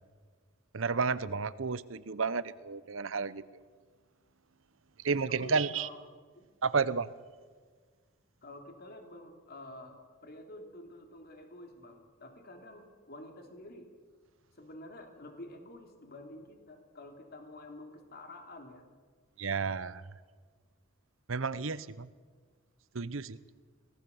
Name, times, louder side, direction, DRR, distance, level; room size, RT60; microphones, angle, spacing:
voice 1, 0.7-3.4 5.0-5.9 6.6-7.1 19.4-20.0 21.3-22.1 22.9-23.4, right 5 dB, 80° right, 17 dB, 0.9 m, -31 dB
voice 2, 5.3-6.0 6.3-6.5 8.4-13.9 14.6-18.9, left 1 dB, 50° left, 4 dB, 3.1 m, -49 dB
24.0 x 18.5 x 7.1 m, 1.6 s
head